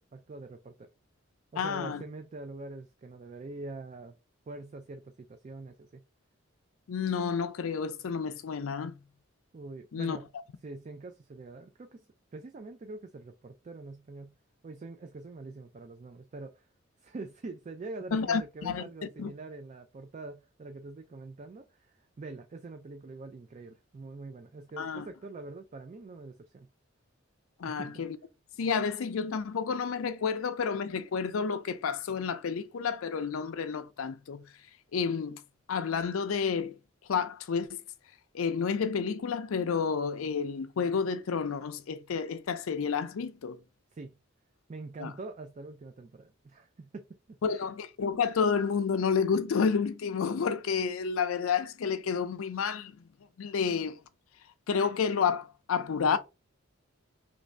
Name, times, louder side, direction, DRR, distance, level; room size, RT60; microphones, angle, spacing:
voice 1, 0.1-0.9 1.5-4.2 4.5-6.0 9.5-10.3 10.6-12.1 12.3-14.4 14.6-16.7 17.0-26.7 27.6-28.0 43.9-44.2 44.7-47.7, right 3 dB, 35° right, 0.3 m, -44 dB
voice 2, 1.6-2.0 6.9-8.9 9.9-10.2 18.1-18.9 19.2-19.3 24.8-25.1 27.6-28.2 28.6-34.4 34.9-35.4 35.7-36.8 37.1-37.8 38.3-43.6 45.0-45.1 47.4-53.0 53.4-54.0 54.7-56.2, left 6 dB, 80° left, 0.4 m, -30 dB
3.1 x 2.6 x 3.2 m
head